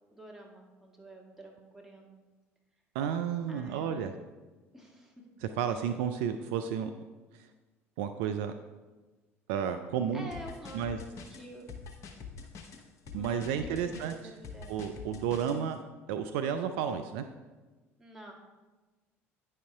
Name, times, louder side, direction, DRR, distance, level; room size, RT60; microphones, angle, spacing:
voice 1, 0.1-2.1 3.5-4.2 4.7-5.2 10.1-11.0 11.3-11.7 13.1-14.8 18.0-18.3, right 1 dB, 5° right, -1 dB, 1.7 m, -48 dB
voice 2, 2.9-4.1 5.4-6.9 7.3-7.5 8.0-8.5 9.5-10.3 10.7-11.0 13.1-14.1 14.7-15.8 16.1-17.3, right 8 dB, 60° right, 8 dB, 0.4 m, -32 dB
sound 1, 10.3-15.6, left 5 dB, 45° left, 0.9 m, -45 dB
9.5 x 5.5 x 3.5 m, 1.2 s
figure-of-eight pair, 60°, 7 cm